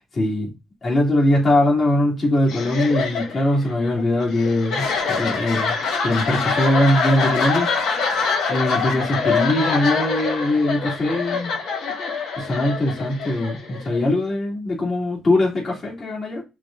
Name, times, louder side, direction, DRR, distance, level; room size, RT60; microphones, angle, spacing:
voice 1, 0.1-0.5 0.8-5.7 6.0-7.7 8.5-11.5 12.4-16.4, left 1 dB, 35° left, 2.0 m, -21 dB
sound 1, 2.4-14.1, left 4 dB, 80° left, 1.1 m, -25 dB
6.1 x 2.2 x 3.5 m
cardioid pair, 110°, 0 cm